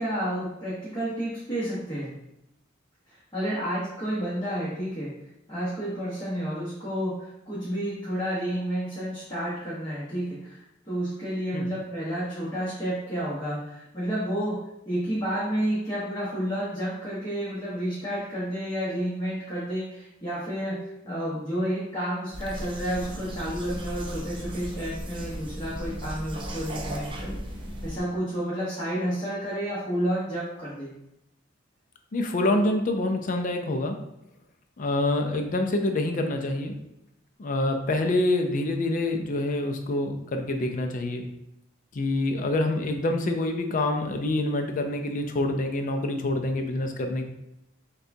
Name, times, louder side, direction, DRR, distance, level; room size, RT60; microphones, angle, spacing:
voice 1, 0.0-2.1 3.1-5.1 5.5-14.6 14.8-27.4 27.8-30.9, equal, 20° left, -9 dB, 1.1 m, -30 dB
sound 1, 22.3-28.0, equal, 25° right, 0.5 m, -36 dB
voice 2, 32.1-34.0 34.8-36.7 37.4-41.3 41.9-47.2, left 2 dB, 45° left, 5 dB, 0.4 m, -26 dB
6.4 x 2.3 x 2.7 m, 0.84 s
head